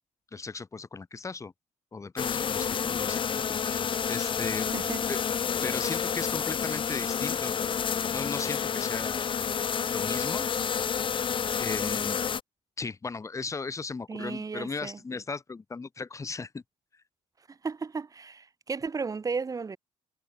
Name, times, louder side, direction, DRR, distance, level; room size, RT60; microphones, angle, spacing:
voice 1, 0.3-1.5 1.9-4.7 5.1-5.2 5.6-7.5 8.1-9.2 9.9-10.5 11.6-12.2 12.8-16.6, left 4 dB, 25° left, 3.7 m, -36 dB
sound 1, 2.2-12.4, left 7 dB, 40° left, 2.6 m, -29 dB
voice 2, 14.1-15.0 17.5-19.8, right 4 dB, 30° right, 3.2 m, -34 dB
cardioid pair, 105°, 13 cm